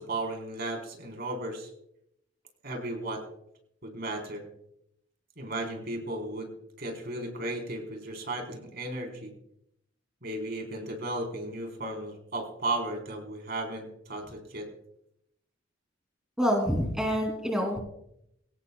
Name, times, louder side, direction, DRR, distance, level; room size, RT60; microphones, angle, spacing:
voice 1, 0.0-1.7 2.6-3.2 3.8-4.5 5.4-6.5 6.8-9.3 10.2-14.7, right 2 dB, 55° right, 2 dB, 4.2 m, -35 dB
voice 2, 16.4-17.8, equal, 5° right, 0 dB, 3.1 m, -27 dB
24.0 x 18.0 x 2.4 m, 0.78 s
head